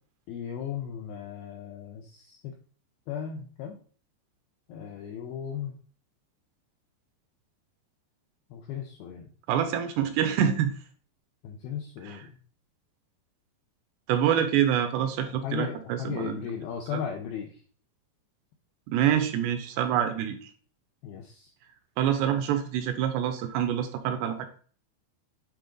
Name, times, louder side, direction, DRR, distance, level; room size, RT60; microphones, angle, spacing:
voice 1, 0.3-2.5 3.1-3.8 4.7-5.8 8.5-9.3 11.4-12.3 15.4-17.5 21.0-21.5, left 8 dB, 85° left, 3 dB, 2.2 m, -36 dB
voice 2, 9.5-10.7 12.0-12.3 14.1-16.5 16.9-17.0 18.9-20.5 22.0-24.5, right 9 dB, 80° right, 8 dB, 2.6 m, -26 dB
9.3 x 3.8 x 3.8 m, 0.43 s
omnidirectional pair, 5.2 m